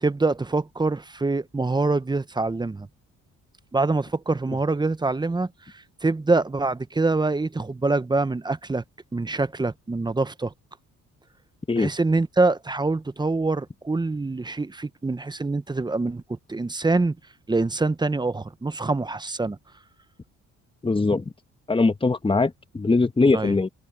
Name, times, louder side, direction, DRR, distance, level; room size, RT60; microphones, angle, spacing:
voice 1, 0.0-2.9 3.7-8.8 9.1-10.5 11.8-17.2 17.5-19.6 23.3-23.6, right 3 dB, 15° right, 0.8 m, -25 dB
voice 2, 20.8-21.2 21.7-23.7, left 3 dB, 15° left, 1.3 m, -21 dB
cardioid pair, 90°, 30 cm